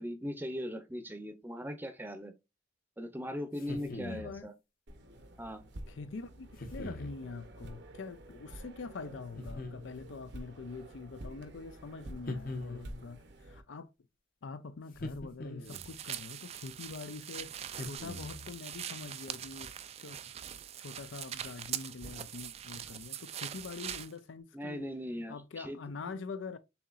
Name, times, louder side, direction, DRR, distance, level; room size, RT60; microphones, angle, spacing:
voice 1, 0.0-2.3 3.0-4.5 5.4-5.6 24.5-26.1, equal, 10° right, 0.7 m, -39 dB
sound 1, 3.6-4.4 6.6-7.2 9.4-10.1 12.3-13.1 14.9-15.9 17.7-18.5, left 2 dB, 50° left, 0.9 m, -42 dB
voice 2, 3.8-4.5 5.9-13.9 14.4-19.7 20.0-20.2 20.8-24.9 25.3-26.6, left 4 dB, 85° left, 0.5 m, -44 dB
sound 2, 4.9-13.6, right 1 dB, 65° right, 0.8 m, -49 dB
sound 3, 15.7-24.1, right 10 dB, 35° right, 0.3 m, -42 dB
6.9 x 2.8 x 2.4 m
head